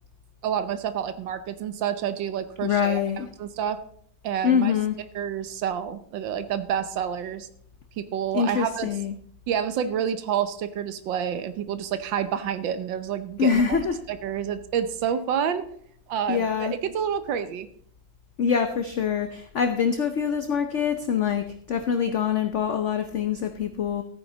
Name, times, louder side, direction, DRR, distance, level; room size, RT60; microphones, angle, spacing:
voice 1, 0.4-3.0 3.4-3.8 4.2-4.7 5.1-7.5 8.0-8.9 9.5-13.8 14.1-15.6 16.1-17.7, right 8 dB, 80° right, 12 dB, 1.5 m, -28 dB
voice 2, 2.6-3.3 4.4-4.9 8.3-9.1 13.4-14.0 16.3-16.7 18.4-24.0, left 7 dB, 55° left, 7 dB, 0.8 m, -24 dB
14.0 x 9.2 x 3.9 m, 0.63 s
omnidirectional pair, 2.1 m